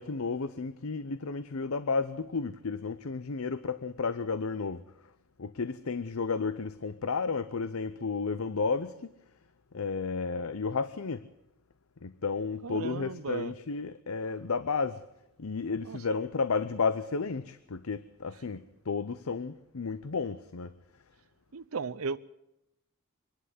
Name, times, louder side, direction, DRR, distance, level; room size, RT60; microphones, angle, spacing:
voice 1, 0.0-4.8 5.4-9.1 9.7-11.3 12.0-15.0 15.4-20.7, left 4 dB, 80° left, 0.7 m, -32 dB
voice 2, 12.6-13.5 15.8-16.0 21.5-22.2, right 5 dB, 75° right, 0.6 m, -35 dB
24.0 x 11.5 x 9.4 m
head